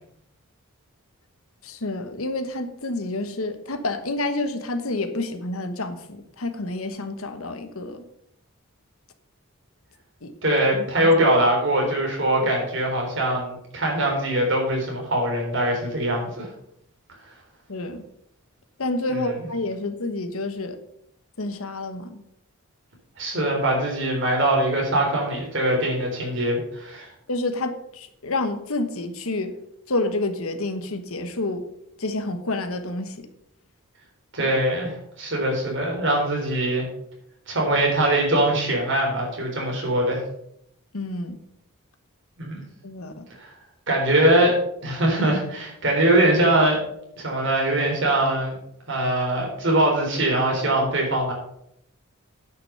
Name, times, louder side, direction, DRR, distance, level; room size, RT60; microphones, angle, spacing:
voice 1, 1.6-8.0 10.2-10.4 10.7-11.4 12.4-12.6 17.7-18.0 18.8-20.8 21.4-22.2 27.3-29.5 29.9-31.7 32.0-33.3 34.4-34.5 40.9-41.4 42.8-43.2, left 2 dB, 75° left, 9 dB, 1.2 m, -29 dB
voice 2, 10.4-16.5 23.2-27.1 34.3-36.9 37.5-40.2 42.4-42.6 43.4-43.5 43.9-44.6 44.8-46.8 47.2-48.5 48.9-51.3, right 1 dB, 55° right, -1 dB, 3.8 m, -22 dB
9.6 x 6.1 x 6.7 m, 0.75 s
head